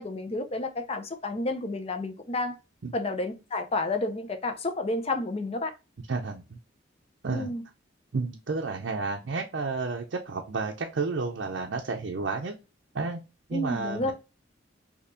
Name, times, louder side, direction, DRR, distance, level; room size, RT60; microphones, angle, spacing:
voice 1, 0.0-2.6 2.9-5.7 7.3-7.6 13.5-14.1, left 2 dB, 30° left, 0.6 m, -30 dB
voice 2, 6.1-6.6 7.2-7.5 8.1-12.5 12.9-13.2 13.5-14.1, right 4 dB, 65° right, 0.5 m, -31 dB
4.2 x 2.8 x 2.6 m
head